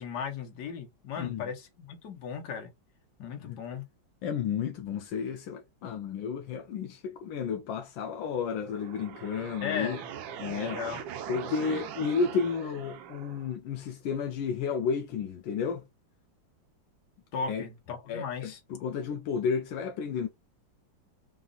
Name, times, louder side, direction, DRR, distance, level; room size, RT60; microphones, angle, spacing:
voice 1, 0.0-2.7 3.2-3.8 9.6-10.1 10.5-11.0 11.4-11.8 17.3-18.6, left 6 dB, 60° left, 1.5 m, -37 dB
voice 2, 4.2-10.0 10.4-10.8 11.3-15.8 17.5-17.6 18.1-20.3, left 6 dB, 80° left, 1.3 m, -32 dB
sound 1, 8.6-13.6, right 9 dB, 80° right, 1.3 m, -41 dB
3.9 x 2.4 x 3.8 m
omnidirectional pair, 2.1 m